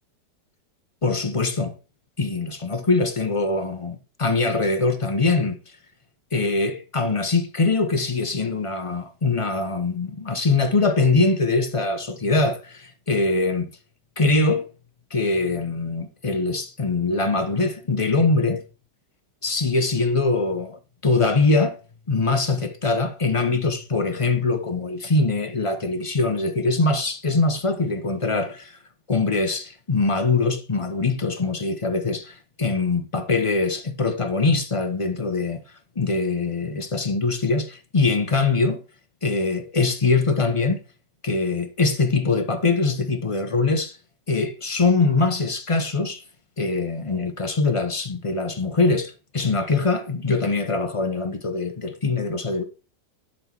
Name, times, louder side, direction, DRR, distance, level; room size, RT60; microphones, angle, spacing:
voice 1, 1.0-1.7 2.2-5.6 6.3-13.7 14.2-14.7 15.1-18.6 19.4-21.8 22.1-28.8 29.1-35.6 36.0-38.8 39.2-40.8 41.2-44.0 44.3-46.2 46.6-52.6, left 3 dB, 40° left, 0.4 m, -23 dB
11.5 x 4.3 x 4.5 m
omnidirectional pair, 1.9 m